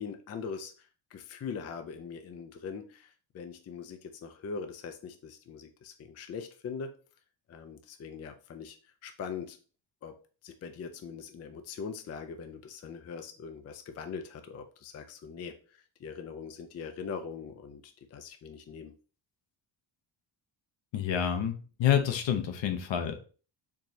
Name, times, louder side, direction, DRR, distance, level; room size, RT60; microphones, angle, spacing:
voice 1, 0.0-6.9 7.5-8.8 9.0-9.6 10.0-10.1 10.4-19.0, left 6 dB, 35° left, 7 dB, 0.4 m, -42 dB
voice 2, 20.9-23.2, left 9 dB, 65° left, 7 dB, 0.8 m, -28 dB
4.4 x 3.0 x 2.7 m, 0.38 s
cardioid pair, 110°, 48 cm